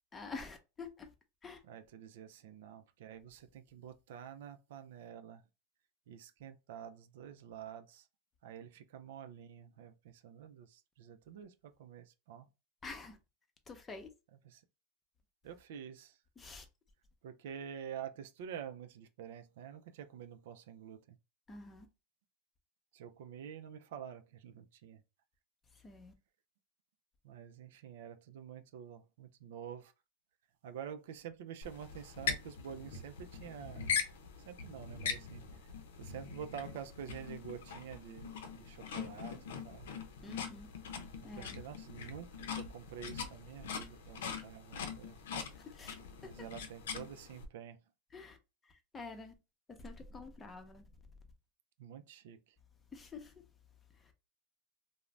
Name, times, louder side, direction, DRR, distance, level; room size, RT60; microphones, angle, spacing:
voice 1, 0.1-1.1 1.4-1.6 12.8-13.2 13.7-14.1 16.4-16.7 21.5-21.9 25.7-26.1 40.2-40.7 41.2-41.6 45.5-46.0 46.2-46.5 48.1-48.4 48.6-49.3 49.7-50.9 52.9-53.5 53.9-54.1, left 3 dB, 20° left, 0.6 m, -48 dB
voice 2, 1.7-5.4 6.1-8.0 8.4-11.5 11.8-12.5 14.5-14.6 15.4-16.2 17.2-21.2 22.9-25.0 27.2-29.9 30.6-33.9 34.5-35.4 36.0-39.4 39.6-39.9 41.4-45.2 46.2-47.8 51.8-52.4, right 8 dB, 75° right, 0.4 m, -48 dB
sound 1, 31.6-47.4, left 6 dB, 85° left, 0.6 m, -42 dB
2.5 x 2.0 x 3.2 m
supercardioid pair, 120°, 0 cm